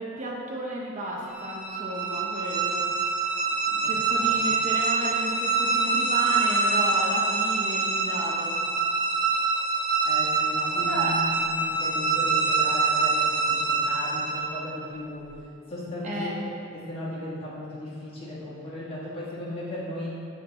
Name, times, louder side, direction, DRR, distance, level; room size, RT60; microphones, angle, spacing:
voice 1, 0.0-2.8 3.7-8.6 10.9-11.1 16.0-16.5, right 1 dB, 35° right, -3 dB, 0.6 m, -33 dB
sound 1, 1.3-14.7, right 4 dB, 55° right, 1.1 m, -25 dB
voice 2, 4.2-4.5 10.0-15.4 15.7-16.4 16.7-20.1, left 1 dB, 25° left, -7 dB, 1.4 m, -36 dB
8.1 x 3.4 x 4.4 m, 2.6 s
head